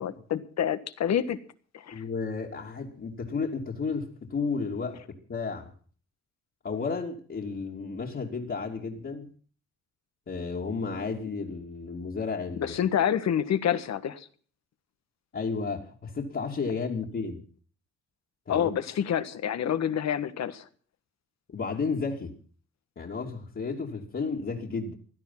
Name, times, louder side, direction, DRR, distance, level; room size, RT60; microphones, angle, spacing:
voice 1, 0.0-1.4 1.7-2.0 12.5-14.3 18.5-20.7, left 9 dB, 65° left, 12 dB, 1.5 m, -28 dB
voice 2, 1.9-5.7 6.6-9.3 10.3-12.7 15.3-17.4 18.5-18.7 21.5-22.3 23.0-25.0, left 4 dB, 45° left, -3 dB, 2.8 m, -32 dB
17.0 x 12.0 x 5.8 m, 0.43 s
cardioid pair, 75°, 29 cm